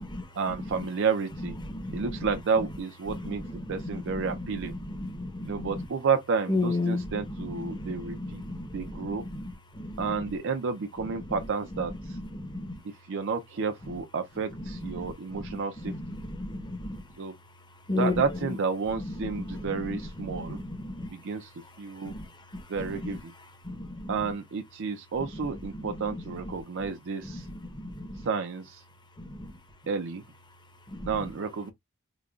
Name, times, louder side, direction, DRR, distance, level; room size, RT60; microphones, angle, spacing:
voice 1, 0.3-1.6 1.9-4.8 5.4-8.4 8.7-9.3 10.0-12.2 12.8-15.9 17.2-17.4 18.0-20.6 21.1-21.5 21.8-22.2 22.7-23.3 24.1-27.5 28.3-28.8 29.9-30.2 31.0-31.7, right 5 dB, 60° right, 0.5 m, -31 dB
voice 2, 1.6-2.1 3.1-4.4 4.8-5.8 6.5-10.0 12.3-12.8 14.8-15.1 15.3-15.6 15.8-17.0 17.9-18.1 19.1-21.1 22.0-22.3 22.5-23.1 23.6-24.1 25.8-26.2 27.2-28.3 29.2-29.5 30.9-31.1, left 2 dB, 20° left, 0.8 m, -34 dB
5.0 x 2.2 x 2.4 m
head